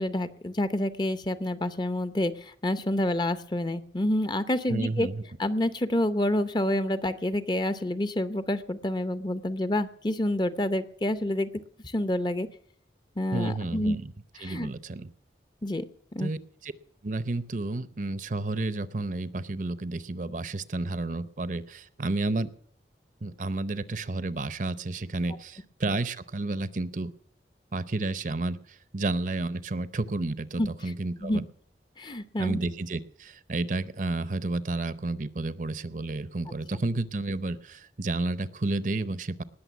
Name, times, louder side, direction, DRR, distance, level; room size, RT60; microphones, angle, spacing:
voice 1, 0.0-5.1 5.4-11.5 11.8-12.5 13.2-14.0 14.4-14.7 15.6-15.8 16.1-16.3 30.6-30.7 31.2-31.4 32.0-32.6, left 1 dB, 25° left, 12 dB, 0.7 m, -28 dB
voice 2, 4.7-5.2 13.3-14.1 14.4-15.1 16.2-16.7 17.0-22.5 23.2-27.1 27.7-31.4 32.4-39.4, right 2 dB, 45° right, 15 dB, 0.7 m, -31 dB
19.5 x 6.7 x 9.2 m, 0.63 s
head